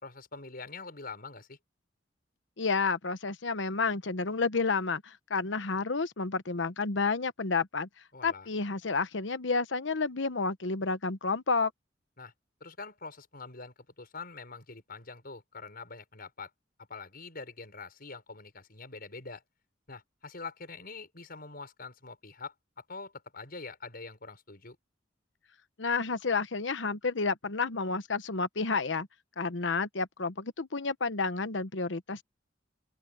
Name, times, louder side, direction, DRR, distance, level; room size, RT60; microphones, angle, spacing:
voice 1, 0.0-1.6 8.1-8.5 12.2-12.3 12.6-16.5 16.9-19.4 19.9-22.5 22.9-24.8, left 4 dB, 55° left, 6.2 m, -44 dB
voice 2, 2.6-7.9 8.2-11.7 25.8-29.1 29.4-32.2, left 4 dB, 75° left, 1.0 m, -30 dB
open air
head